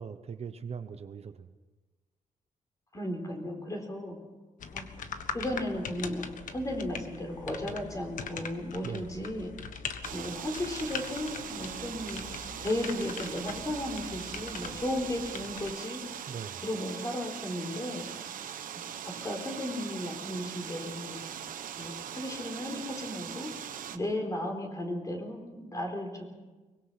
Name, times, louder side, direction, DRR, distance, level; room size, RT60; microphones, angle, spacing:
voice 1, 0.0-1.5 8.8-9.1 16.3-16.6, right 6 dB, 50° right, 9 dB, 1.0 m, -40 dB
voice 2, 2.9-4.2 4.7-4.9 5.3-9.5 10.1-12.2 12.6-16.0 16.6-18.1 19.2-21.2 21.8-23.5 23.9-26.2, left 1 dB, 25° left, 3 dB, 4.5 m, -35 dB
sound 1, 4.6-15.7, left 6 dB, 70° left, 1.5 m, -42 dB
sound 2, 10.0-24.0, right 9 dB, 85° right, 1.1 m, -41 dB
23.5 x 21.5 x 5.9 m, 1.2 s
wide cardioid pair, 140°, 14 cm